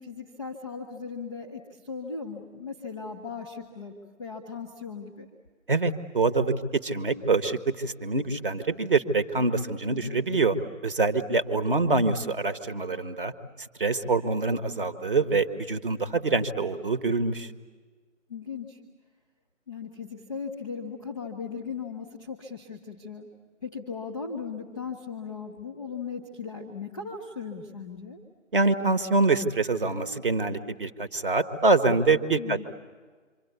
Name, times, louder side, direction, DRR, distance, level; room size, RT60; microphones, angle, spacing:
voice 1, 0.0-5.3 9.9-10.2 18.3-18.8 19.7-23.3 23.6-28.2 32.4-32.6, left 5 dB, ahead, 4 dB, 1.1 m, -38 dB
voice 2, 5.7-6.6 6.8-10.6 10.8-13.3 13.6-17.5 28.5-32.6, right 3 dB, 40° right, 9 dB, 1.7 m, -25 dB
27.0 x 25.5 x 8.3 m, 1.5 s
figure-of-eight pair, 160°, 40 cm